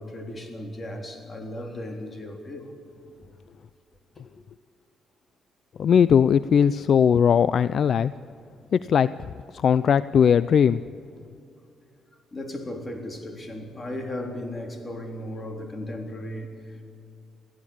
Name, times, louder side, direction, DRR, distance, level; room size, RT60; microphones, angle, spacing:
voice 1, 0.0-2.7 3.1-3.2 4.2-4.3 12.3-16.8, left 1 dB, 30° left, 3.6 m, -36 dB
voice 2, 5.8-8.1 8.7-9.1 9.6-10.8, left 7 dB, 55° left, 0.4 m, -19 dB
23.0 x 15.5 x 8.6 m
cardioid pair, 90°, 0 cm